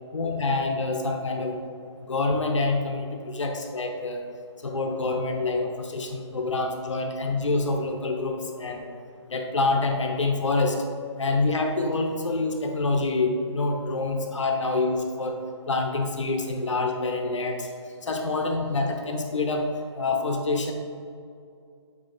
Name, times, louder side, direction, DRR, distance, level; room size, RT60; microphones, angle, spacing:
voice 1, 0.1-1.6 2.0-4.2 4.6-8.9 9.3-10.8 11.2-17.7 18.0-20.7, left 3 dB, 85° left, 3 dB, 0.8 m, -26 dB
8.7 x 5.1 x 2.5 m, 2.4 s
hypercardioid pair, 160°, 15 cm